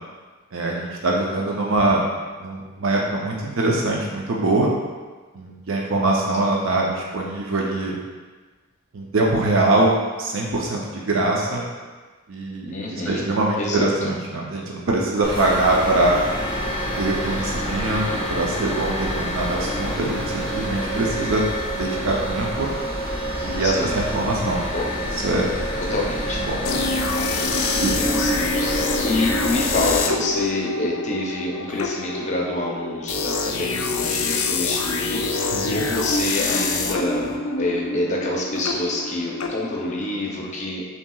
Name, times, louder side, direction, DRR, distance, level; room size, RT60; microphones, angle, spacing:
voice 1, 0.5-2.1 2.4-4.7 5.3-8.0 8.9-11.7 12.3-16.2 17.0-18.0 18.3-21.4 21.7-22.7 23.4-24.6 25.2-25.5 26.5-26.6 27.8-27.9 35.5-35.8, right 2 dB, 70° right, -2 dB, 0.5 m, -23 dB
voice 2, 12.6-13.3 13.6-14.1 23.3-24.0 24.7-25.1 25.9-26.4 27.6-37.3 37.6-40.9, left 2 dB, 35° left, -2 dB, 0.5 m, -27 dB
sound 1, 15.2-30.0, equal, 10° right, 1.1 m, -27 dB
sound 2, 26.6-40.4, left 3 dB, 85° left, 0.4 m, -26 dB
5.8 x 2.8 x 2.3 m, 1.3 s
head